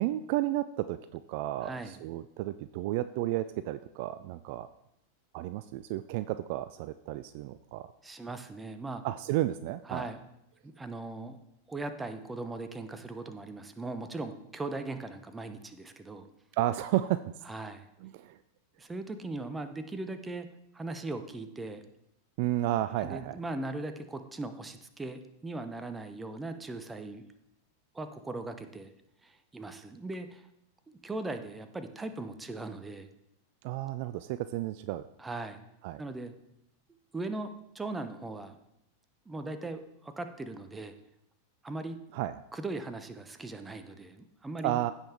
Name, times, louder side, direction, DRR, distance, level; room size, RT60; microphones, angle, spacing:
voice 1, 0.0-4.7 5.3-7.9 9.0-10.1 16.5-17.3 18.0-18.4 22.4-23.4 33.6-35.1 35.8-36.0 42.1-42.4 44.6-44.9, right 14 dB, 45° right, 13 dB, 0.3 m, -32 dB
voice 2, 1.6-2.0 8.0-9.0 9.9-10.2 10.6-11.4 11.7-16.3 17.5-17.9 18.8-20.5 20.7-21.8 23.0-27.2 27.9-28.9 29.2-30.5 30.9-33.1 35.2-35.6 36.0-36.3 37.1-38.6 39.3-40.9 41.6-42.0 42.5-44.8, right 2 dB, 10° right, 9 dB, 0.8 m, -39 dB
15.5 x 5.6 x 3.5 m, 0.82 s
figure-of-eight pair, 90°, 0 cm